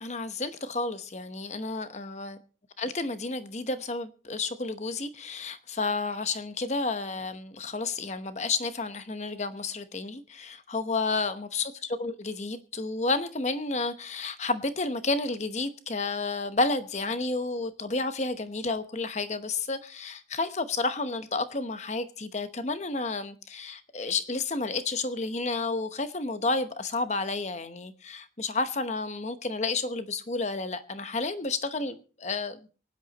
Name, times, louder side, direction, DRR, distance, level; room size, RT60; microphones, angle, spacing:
voice 1, 0.0-2.4 2.8-32.7, left 3 dB, 40° left, 0.9 m, -31 dB
24.5 x 9.4 x 2.9 m
head